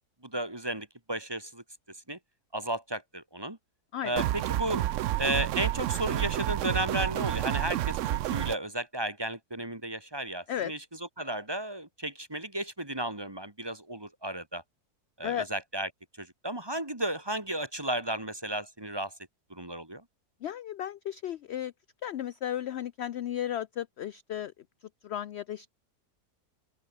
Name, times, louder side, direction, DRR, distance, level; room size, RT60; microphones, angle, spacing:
voice 1, 0.2-1.6 2.1-2.2 2.5-3.6 4.0-4.8 5.2-14.6 15.2-15.9 16.2-19.1 19.5-20.0, right 1 dB, 15° right, 2.0 m, -34 dB
voice 2, 3.9-4.3 10.5-10.7 15.2-15.5 20.4-21.7 22.0-24.5 25.0-25.7, left 11 dB, 70° left, 0.6 m, -34 dB
sound 1, 4.2-8.6, right 14 dB, 70° right, 0.7 m, -29 dB
open air
omnidirectional pair, 1.7 m